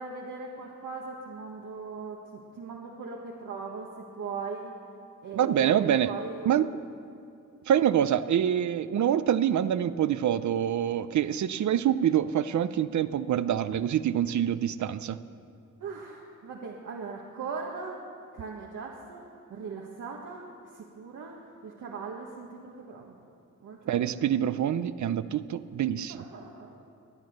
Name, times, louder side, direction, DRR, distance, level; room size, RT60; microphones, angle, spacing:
voice 1, 0.0-3.9 4.2-4.7 5.2-6.6 15.8-18.0 18.3-19.2 19.5-20.4 20.7-23.1 23.6-24.3 26.1-26.9, right 4 dB, 90° right, -2 dB, 1.5 m, -39 dB
voice 2, 5.3-6.1 6.5-6.7 7.7-15.2 23.9-26.3, right 10 dB, 70° right, 13 dB, 0.6 m, -26 dB
21.5 x 9.1 x 6.6 m, 2.4 s
cardioid pair, 100°, 31 cm